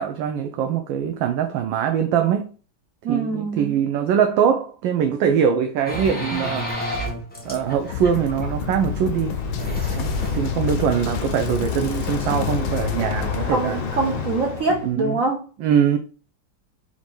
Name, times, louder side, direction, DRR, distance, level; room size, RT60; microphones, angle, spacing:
voice 1, 0.0-2.5 3.1-6.7 7.4-9.4 9.9-13.8 14.8-15.2 15.6-16.0, right 8 dB, 80° right, 1.2 m, -22 dB
voice 2, 3.0-3.8 13.5-15.4, right 3 dB, 65° right, 0.9 m, -24 dB
sound 1, 5.9-9.0 9.5-11.0, equal, 10° left, 0.7 m, -30 dB
Bicycle, 7.4-14.9, left 6 dB, 65° left, 1.5 m, -29 dB
sound 2, 7.9-13.5, left 6 dB, 85° left, 1.4 m, -30 dB
4.4 x 2.7 x 4.3 m
omnidirectional pair, 2.1 m